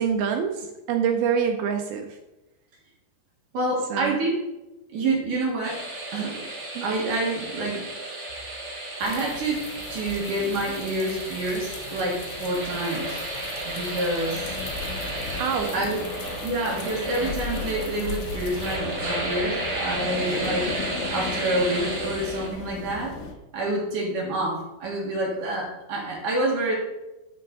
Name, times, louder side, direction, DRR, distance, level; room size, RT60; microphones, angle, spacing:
voice 1, 0.0-2.1 3.9-4.2 6.8-6.9 15.4-15.7, right 7 dB, 80° right, 4 dB, 2.2 m, -25 dB
voice 2, 3.5-4.4 4.9-5.8 6.1-6.4 6.8-7.9 9.0-9.6 9.9-13.2 13.6-14.6 15.7-16.0 16.4-20.7 21.1-23.1 23.5-26.8, right 2 dB, 55° right, -3 dB, 2.8 m, -27 dB
sound 1, 5.6-22.5, right 1 dB, 30° right, 2.4 m, -33 dB
sound 2, 9.0-18.8, left 5 dB, 90° left, 3.3 m, -41 dB
sound 3, 14.3-23.3, left 5 dB, 70° left, 2.4 m, -36 dB
11.0 x 5.8 x 4.0 m, 1.0 s
omnidirectional pair, 5.1 m